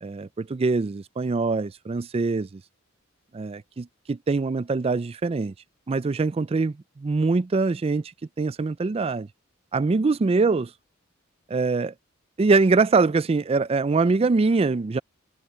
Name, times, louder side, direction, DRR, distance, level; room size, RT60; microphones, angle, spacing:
voice 1, 0.0-2.6 3.3-5.5 5.9-8.0 8.4-9.3 9.7-10.7 11.5-11.9 12.4-15.0, right 3 dB, 30° right, 0.4 m, -23 dB
head